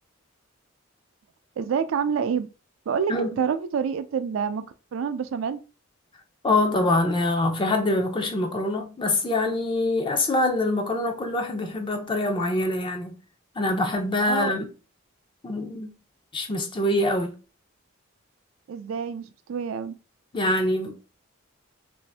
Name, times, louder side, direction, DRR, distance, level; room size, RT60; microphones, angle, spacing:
voice 1, 1.6-2.5 2.9-4.7 4.9-5.6 14.3-14.5 18.7-20.0, right 6 dB, 75° right, 0.3 m, -27 dB
voice 2, 6.4-13.2 13.6-14.7 15.4-15.9 16.3-17.3 20.3-20.9, left 2 dB, 25° left, 0.4 m, -24 dB
2.6 x 2.5 x 3.3 m
head